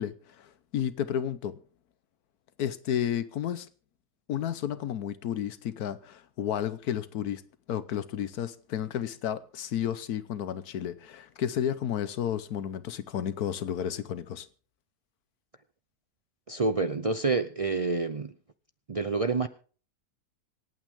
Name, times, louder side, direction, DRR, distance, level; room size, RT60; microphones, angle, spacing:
voice 1, 0.0-1.6 2.6-3.7 4.3-7.4 7.7-14.5, left 9 dB, 85° left, 1.3 m, -32 dB
voice 2, 16.5-18.3 18.9-19.5, right 3 dB, 65° right, 0.3 m, -28 dB
26.0 x 9.0 x 3.6 m
omnidirectional pair, 1.6 m